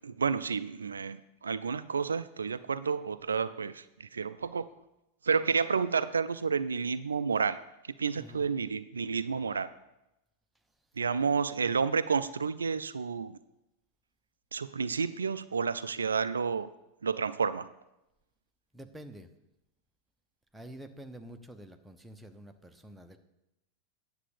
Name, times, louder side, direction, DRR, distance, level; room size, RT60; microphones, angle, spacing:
voice 1, 0.0-4.7 5.2-7.6 8.0-9.7 11.0-13.4 14.5-16.7 17.0-17.7, right 5 dB, 75° right, 14 dB, 0.4 m, -30 dB
voice 2, 8.1-8.5 18.7-19.3 20.5-23.2, right 1 dB, 5° right, 5 dB, 1.0 m, -48 dB
9.9 x 7.4 x 7.0 m, 0.91 s
figure-of-eight pair, 90°, 0 cm